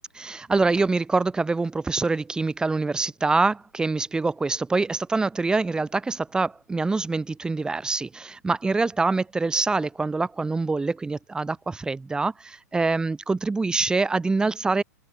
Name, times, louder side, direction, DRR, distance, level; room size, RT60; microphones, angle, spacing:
voice 1, 0.1-14.8, right 3 dB, 10° right, 2.0 m, -25 dB
open air
figure-of-eight pair, 100°, 9 cm